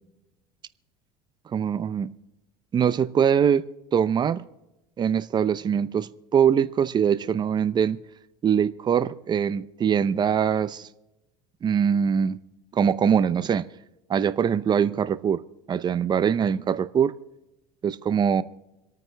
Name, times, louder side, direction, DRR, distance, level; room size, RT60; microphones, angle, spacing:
voice 1, 1.5-2.1 2.7-3.7 3.9-4.4 5.0-8.0 8.4-10.9 11.6-12.4 12.7-13.7 14.1-15.4 15.7-17.1 17.8-18.4, right 7 dB, 30° right, 0.7 m, -23 dB
26.5 x 9.3 x 3.4 m
supercardioid pair, 110°, 15 cm